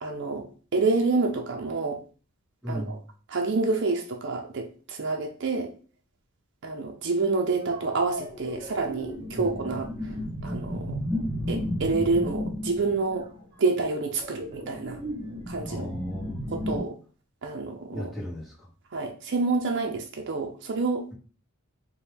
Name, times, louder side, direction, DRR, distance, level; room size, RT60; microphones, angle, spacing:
voice 1, 0.0-2.0 2.7-3.0 3.3-5.7 6.6-10.2 10.4-11.0 11.5-15.0 15.5-15.9 16.5-17.0 17.4-18.1 18.9-21.1, right 3 dB, 55° right, 2 dB, 0.5 m, -28 dB
voice 2, 2.6-3.0 15.7-16.4 17.9-18.7, equal, ahead, -4 dB, 1.2 m, -35 dB
sound 1, 7.7-16.8, left 1 dB, 25° right, 1.3 m, -34 dB
4.4 x 2.2 x 3.4 m, 0.38 s
head